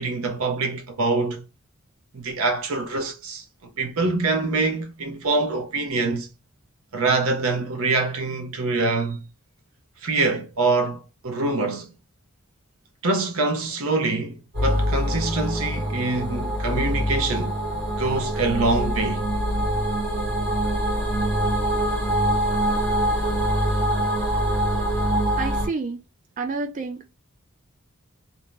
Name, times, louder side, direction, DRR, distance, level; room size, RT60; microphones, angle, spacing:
voice 1, 0.0-1.5 2.1-3.4 3.8-6.3 6.9-9.2 10.0-11.9 13.0-17.5 18.0-19.3, right 3 dB, 85° right, 0.6 m, -25 dB
sound 1, 14.5-25.7, right 1 dB, 55° right, 1.2 m, -24 dB
voice 2, 25.4-26.0 26.4-27.2, right 4 dB, 35° right, 0.3 m, -29 dB
2.6 x 2.0 x 3.2 m
head